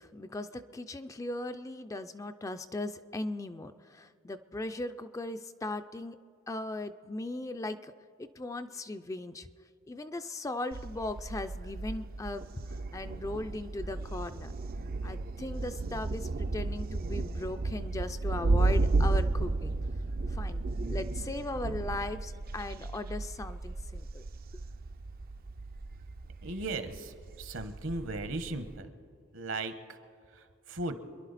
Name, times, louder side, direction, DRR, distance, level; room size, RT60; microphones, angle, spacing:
voice 1, 0.0-6.2 6.5-7.9 8.2-9.5 9.9-12.5 12.9-14.6 15.0-19.7 20.3-24.2, left 2 dB, 15° left, 9 dB, 0.4 m, -38 dB
Thunder, 10.7-28.8, right 3 dB, 45° right, 0.5 m, -33 dB
voice 2, 26.4-28.9 29.3-29.7 30.4-31.0, right 2 dB, 65° right, 9 dB, 1.2 m, -37 dB
27.0 x 11.0 x 4.1 m, 2.4 s
head